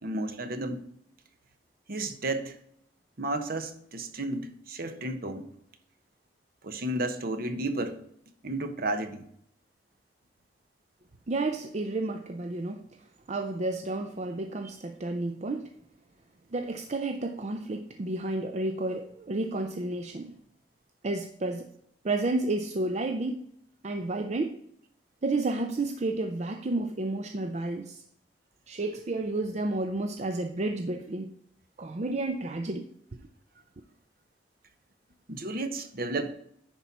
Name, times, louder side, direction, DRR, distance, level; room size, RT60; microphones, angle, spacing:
voice 1, 0.0-0.8 1.9-2.6 3.2-5.5 6.6-8.0 8.4-9.3 35.3-36.3, right 2 dB, 55° right, 1.0 m, -32 dB
voice 2, 11.3-12.8 13.3-15.7 16.5-20.3 21.0-21.7 22.0-23.4 23.8-24.6 25.2-28.0 28.7-31.4 31.8-32.9, right 2 dB, 40° right, 0.5 m, -31 dB
10.0 x 4.4 x 5.4 m
head